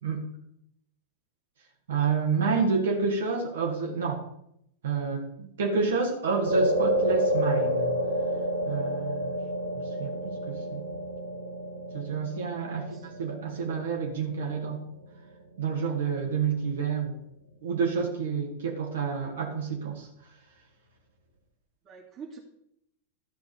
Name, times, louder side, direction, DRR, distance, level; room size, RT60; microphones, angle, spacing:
voice 1, 1.9-4.2 4.8-7.9 8.7-9.4 10.0-10.8 11.9-14.8 15.6-17.1 17.6-20.1, right 5 dB, 65° right, 0 dB, 2.0 m, -29 dB
sound 1, 6.4-14.9, equal, 90° right, 2.4 m, -29 dB
voice 2, 12.7-13.1 21.8-22.4, right 5 dB, 30° right, 1 dB, 2.3 m, -45 dB
13.0 x 4.6 x 6.8 m, 0.75 s
figure-of-eight pair, 90°, 0 cm